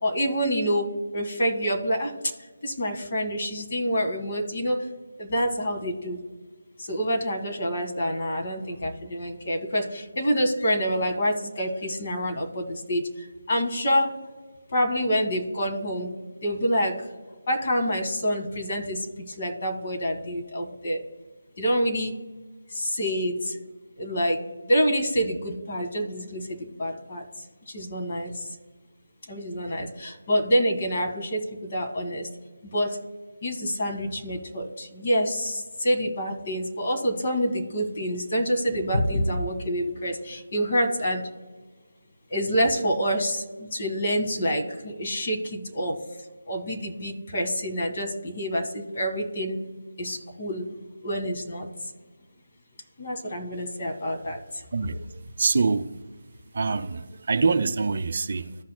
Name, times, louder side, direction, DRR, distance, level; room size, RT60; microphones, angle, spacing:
voice 1, 0.0-2.3 2.6-4.9 5.2-6.2 6.8-14.1 14.7-16.1 16.4-17.1 17.5-21.0 21.6-22.2 22.7-23.6 24.0-24.4 24.7-28.5 29.3-32.3 32.6-33.0 33.4-41.3 42.3-46.0 46.5-49.6 50.0-50.7 51.0-51.7 53.0-54.9, equal, 40° left, 1.6 m, -27 dB
voice 2, 54.7-55.1 55.4-55.9 56.5-58.6, right 4 dB, 50° right, 0.5 m, -25 dB
14.5 x 5.8 x 2.2 m
figure-of-eight pair, 160°, 0 cm